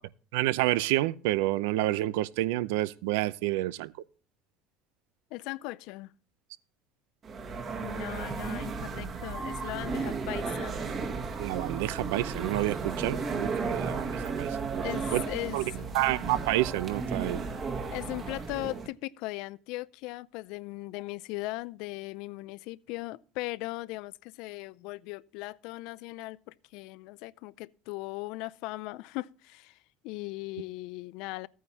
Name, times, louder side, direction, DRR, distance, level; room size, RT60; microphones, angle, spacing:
voice 1, 0.3-3.9 11.4-14.8 15.1-15.2 15.5-15.6 15.9-17.5, right 17 dB, 85° right, 0.6 m, -29 dB
voice 2, 5.3-6.1 7.8-10.7 14.8-15.9 17.9-29.8 30.0-31.5, left 20 dB, 70° left, 0.5 m, -38 dB
sound 1, 7.2-18.9, right 4 dB, 40° right, 1.8 m, -34 dB
14.0 x 9.3 x 2.8 m
supercardioid pair, 100°, 0 cm